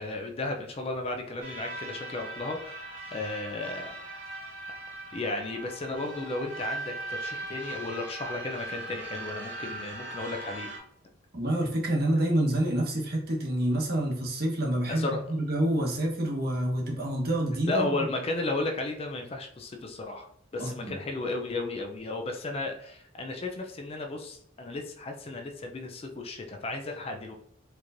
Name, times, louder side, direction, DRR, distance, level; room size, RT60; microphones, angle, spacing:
voice 1, 0.0-4.3 5.1-10.7 14.9-15.2 17.7-27.3, left 2 dB, 30° left, 3 dB, 0.4 m, -34 dB
sound 1, 1.4-10.8, right 2 dB, 80° right, 1.4 m, -39 dB
voice 2, 11.3-17.9 20.6-20.9, right 1 dB, 50° right, -2 dB, 1.1 m, -27 dB
4.4 x 3.0 x 2.5 m, 0.71 s
head